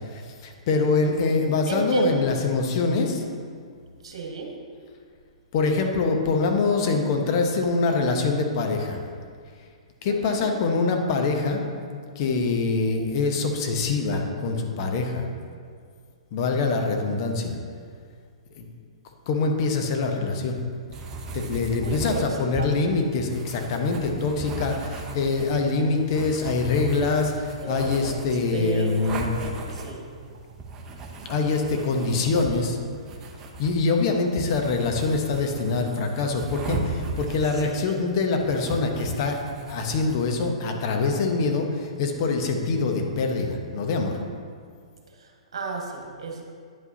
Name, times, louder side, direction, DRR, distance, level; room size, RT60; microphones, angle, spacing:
voice 1, 0.1-3.2 5.5-9.0 10.0-11.6 12.2-15.3 16.3-17.6 18.6-18.7 19.3-20.6 21.3-29.3 29.7-29.9 31.3-32.8 33.6-39.4 39.7-44.2, left 4 dB, 45° left, 3 dB, 1.0 m, -24 dB
voice 2, 1.7-2.2 4.0-4.6 10.0-10.5 21.8-22.7 27.6-28.1 28.5-30.1 37.5-37.9 45.2-46.4, right 4 dB, 65° right, 1 dB, 1.4 m, -33 dB
sound 1, 20.9-40.5, right 3 dB, 20° right, 0.8 m, -37 dB
9.5 x 8.2 x 2.8 m, 2.1 s
figure-of-eight pair, 115°, 3 cm